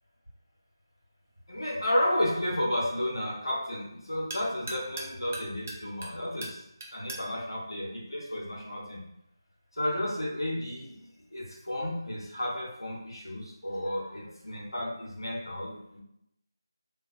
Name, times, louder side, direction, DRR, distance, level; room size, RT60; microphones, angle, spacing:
sound 1, 1.2-8.8, right 2 dB, 30° right, 0.4 m, -45 dB
voice 1, 1.5-6.6 6.9-9.0 9.7-16.0, left 1 dB, 75° left, -3 dB, 1.0 m, -32 dB
2.7 x 2.4 x 2.5 m, 0.78 s
figure-of-eight pair, 160°, 2 cm